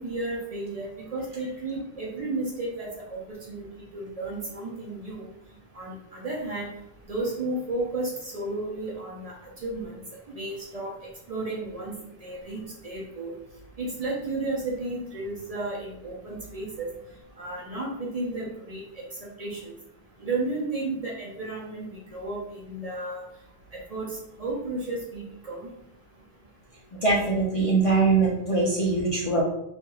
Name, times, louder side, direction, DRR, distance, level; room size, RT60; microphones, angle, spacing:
voice 1, 0.0-3.7 3.9-5.3 5.7-6.7 7.1-9.3 9.6-9.9 10.3-10.9 11.3-13.3 13.8-16.9 17.4-18.8 19.4-19.7 20.2-23.2 23.9-25.7, right 2 dB, 45° right, -4 dB, 0.6 m, -33 dB
voice 2, 27.0-29.4, right 3 dB, 50° left, -3 dB, 0.4 m, -22 dB
3.0 x 2.5 x 2.3 m, 0.83 s
omnidirectional pair, 1.0 m